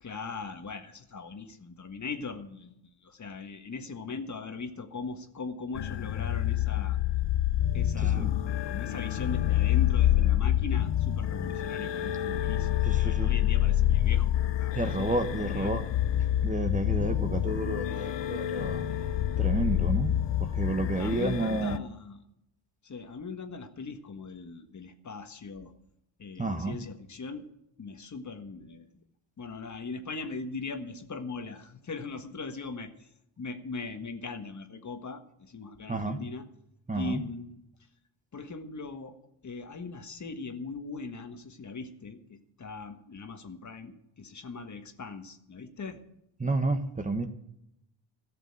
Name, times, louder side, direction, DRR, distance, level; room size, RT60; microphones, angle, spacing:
voice 1, 0.0-7.0 7.7-14.3 14.6-15.2 15.5-15.8 21.0-22.2 22.8-25.7 26.2-27.5 27.8-28.9 29.4-32.9 33.4-36.5 36.9-37.6 38.3-39.2 39.4-46.0, left 4 dB, 40° left, 7 dB, 1.6 m, -40 dB
sound 1, 5.8-21.8, left 12 dB, 65° left, 0.8 m, -27 dB
voice 2, 8.0-8.3 12.8-13.3 14.7-15.8 16.4-18.9 19.4-20.1 20.4-21.8 26.4-26.8 35.9-36.2 36.9-37.2 46.4-47.3, right 2 dB, 15° right, 7 dB, 1.2 m, -30 dB
13.5 x 6.8 x 8.8 m, 0.82 s
cardioid pair, 80°, 46 cm